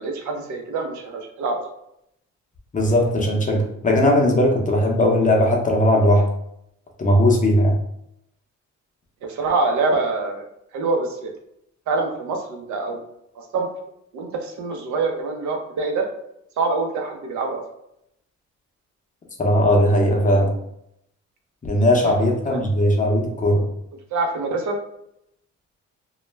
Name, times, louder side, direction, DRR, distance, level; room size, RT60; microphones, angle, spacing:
voice 1, 0.0-1.6 9.2-11.3 11.9-13.0 13.4-13.7 14.1-16.1 16.6-17.6 22.0-22.2 22.5-22.6 24.1-24.8, right 3 dB, 70° right, 3 dB, 0.6 m, -25 dB
voice 2, 2.7-6.3 7.0-7.7 19.4-20.5 21.6-23.6, left 1 dB, 25° left, 0 dB, 0.6 m, -18 dB
2.2 x 2.1 x 3.1 m, 0.77 s
cardioid pair, 90°, 30 cm